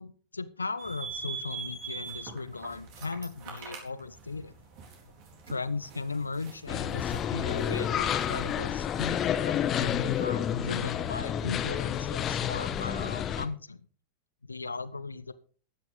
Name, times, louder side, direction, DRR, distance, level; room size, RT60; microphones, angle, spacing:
voice 1, 0.0-4.5 5.5-13.9 14.4-15.3, left 4 dB, 80° left, 17 dB, 0.6 m, -37 dB
sound 1, 0.8-10.2, right 5 dB, 45° right, 4.0 m, -44 dB
sound 2, 6.7-13.5, left 9 dB, 30° left, 1.1 m, -30 dB
15.0 x 10.5 x 3.6 m, 0.42 s
figure-of-eight pair, 90°, 0 cm